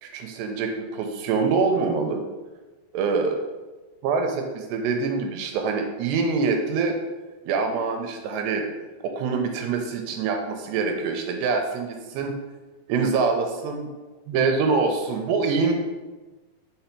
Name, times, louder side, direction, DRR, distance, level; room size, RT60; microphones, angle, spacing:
voice 1, 0.0-2.2 2.9-3.4 4.0-7.0 7.5-8.6 9.0-12.4 12.9-13.9 14.3-15.7, right 4 dB, 80° right, 4 dB, 2.5 m, -25 dB
6.8 x 3.7 x 4.4 m, 1.2 s
omnidirectional pair, 5.2 m